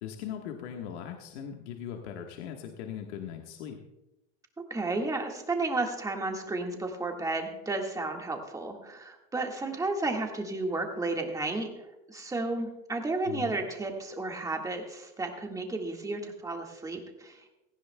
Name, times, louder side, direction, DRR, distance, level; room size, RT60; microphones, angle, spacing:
voice 1, 0.0-3.8 13.3-13.6, left 9 dB, 80° left, 2 dB, 1.5 m, -39 dB
voice 2, 4.7-11.7 12.1-17.5, right 2 dB, 10° right, 2 dB, 1.8 m, -32 dB
17.5 x 15.0 x 2.3 m, 0.93 s
supercardioid pair, 130°, 34 cm